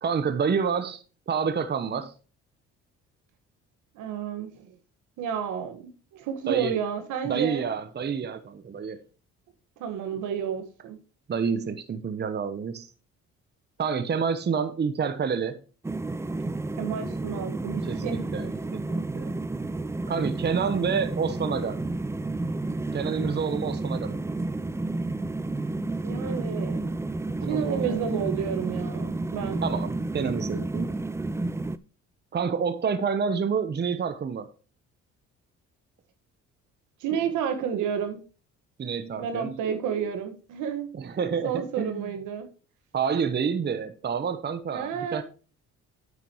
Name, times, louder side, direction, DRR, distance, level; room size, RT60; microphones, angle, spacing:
voice 1, 0.0-2.1 6.5-6.7 7.2-9.0 11.3-12.9 13.8-15.6 17.8-19.3 20.1-21.8 22.9-24.2 27.4-28.1 29.6-31.0 32.3-34.5 38.8-39.6 40.9-42.1 42.9-45.2, right 6 dB, 35° right, 0.9 m, -28 dB
voice 2, 3.9-4.7 5.2-7.7 9.8-11.0 16.8-18.2 26.0-26.9 27.2-29.6 37.0-38.2 39.2-40.9 41.4-42.5 44.7-45.2, right 8 dB, 80° right, 1.7 m, -31 dB
sound 1, 15.8-31.8, right 2 dB, 10° right, 0.5 m, -31 dB
9.2 x 8.4 x 3.1 m
supercardioid pair, 75°, 30 cm